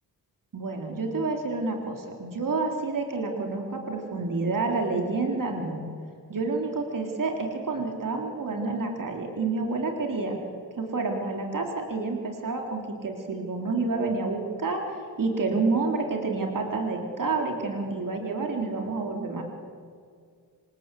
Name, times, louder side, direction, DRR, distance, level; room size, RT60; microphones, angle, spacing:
voice 1, 0.5-5.8 6.3-10.4 10.8-19.4, right 3 dB, 55° right, 2 dB, 3.7 m, -29 dB
26.5 x 26.5 x 8.4 m, 2.2 s
wide cardioid pair, 170°, 39 cm